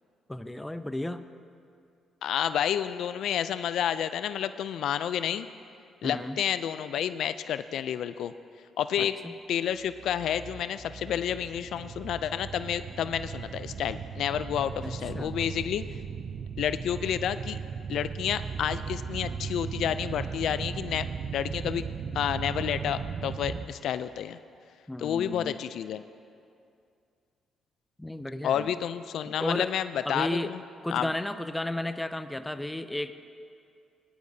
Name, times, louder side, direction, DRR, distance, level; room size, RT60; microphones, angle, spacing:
voice 1, 0.3-1.3 6.0-6.4 9.0-9.3 14.8-15.3 24.9-25.6 28.0-28.7 29.3-29.7 30.1-30.5 30.8-33.1, left 1 dB, 10° left, 10 dB, 0.5 m, -33 dB
voice 2, 2.2-5.5 6.0-8.3 8.8-9.2 9.5-15.8 16.6-17.6 17.9-21.1 21.3-21.9 22.1-24.4 25.0-26.0 28.4-30.6 30.9-31.1, left 9 dB, 75° left, 12 dB, 0.3 m, -30 dB
sound 1, 9.8-23.6, right 6 dB, 55° right, 0.5 m, -37 dB
18.5 x 10.5 x 2.7 m, 2.4 s
cardioid pair, 90°, 0 cm